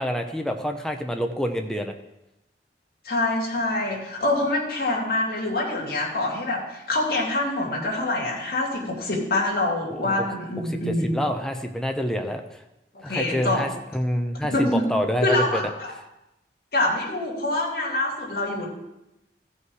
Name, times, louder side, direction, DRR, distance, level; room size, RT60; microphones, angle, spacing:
voice 1, 0.0-1.9 9.9-10.1 10.9-12.6 13.0-15.6, equal, 5° left, 4 dB, 0.7 m, -27 dB
voice 2, 3.0-11.2 12.9-13.6 14.5-14.8 15.2-15.9 16.7-18.7, left 2 dB, 55° left, -3 dB, 2.5 m, -25 dB
14.5 x 5.5 x 4.8 m, 0.92 s
head